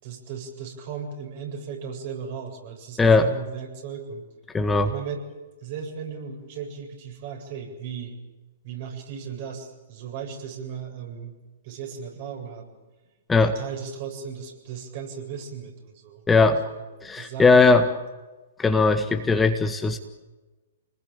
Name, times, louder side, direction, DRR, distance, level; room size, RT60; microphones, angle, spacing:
voice 1, 0.0-4.3 4.9-5.2 5.6-8.2 8.6-11.4 11.6-12.7 13.4-16.8 17.1-17.7, right 7 dB, 50° right, 2 dB, 7.9 m, -36 dB
voice 2, 3.0-3.3 4.5-4.9 13.3-13.6 16.3-16.6 17.0-17.9 18.6-20.0, left 3 dB, 10° left, 6 dB, 1.6 m, -19 dB
28.5 x 20.0 x 9.0 m, 1.2 s
figure-of-eight pair, 115°, 0 cm